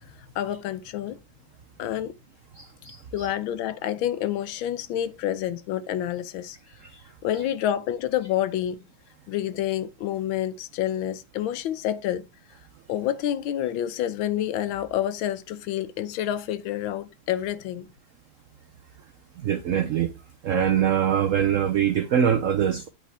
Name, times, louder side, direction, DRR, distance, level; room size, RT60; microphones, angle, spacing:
voice 1, 0.1-1.2 1.8-2.1 3.1-6.6 7.2-8.9 9.3-12.3 12.9-17.9, left 11 dB, 90° left, 1.5 m, -28 dB
voice 2, 2.6-3.3 6.8-7.0 19.4-20.1 20.4-22.9, right 9 dB, 85° right, 0.7 m, -24 dB
8.6 x 5.5 x 3.3 m
omnidirectional pair, 2.1 m